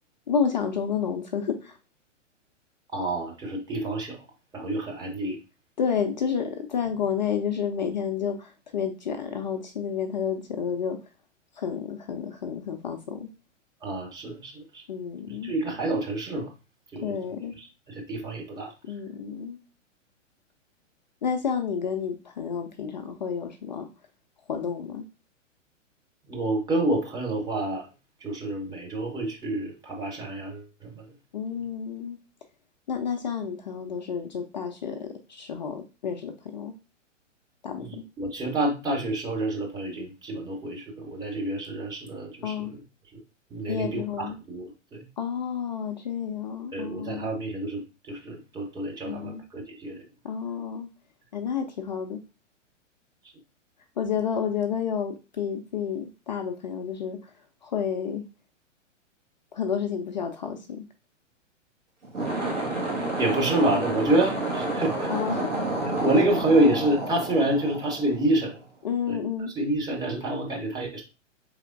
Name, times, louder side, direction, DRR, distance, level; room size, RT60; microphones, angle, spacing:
voice 1, 0.3-1.8 5.8-11.0 11.5-13.3 14.9-15.5 17.0-17.5 18.8-19.6 21.2-23.9 24.5-25.0 31.3-32.2 32.9-36.7 37.6-38.0 42.4-42.7 43.7-44.4 45.2-47.3 49.1-49.4 50.2-50.9 51.3-52.2 54.0-57.3 57.6-58.2 59.5-60.9 65.1-65.5 68.8-69.5, left 7 dB, 40° left, 0.4 m, -30 dB
voice 2, 2.9-4.2 4.5-5.4 13.8-14.8 15.4-16.5 16.9-17.2 17.6-18.7 26.3-27.9 28.2-31.0 37.8-42.7 43.5-45.1 46.7-50.0 63.2-65.1 65.9-68.6 69.1-69.2 69.5-71.0, right 1 dB, 10° right, 0.8 m, -28 dB
sound 1, 62.0-68.6, right 2 dB, 70° right, 1.7 m, -30 dB
4.8 x 3.3 x 2.4 m
figure-of-eight pair, 110°, 38 cm